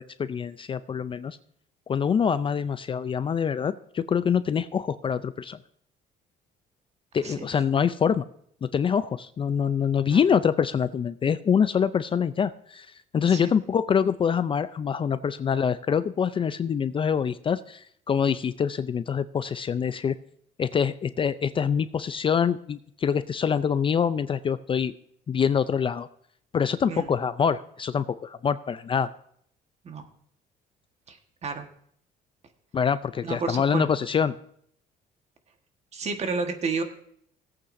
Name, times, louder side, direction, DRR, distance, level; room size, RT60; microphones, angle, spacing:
voice 1, 0.0-1.4 1.9-5.6 7.1-8.2 8.6-12.9 13.1-20.1 20.6-24.9 25.3-26.1 26.5-29.1 32.7-34.3, left 7 dB, 30° left, 13 dB, 0.4 m, -25 dB
voice 2, 31.1-31.7 33.2-33.8 35.9-36.8, right 4 dB, 40° right, 6 dB, 1.4 m, -31 dB
17.5 x 8.5 x 2.6 m, 0.65 s
cardioid pair, 110°, 17 cm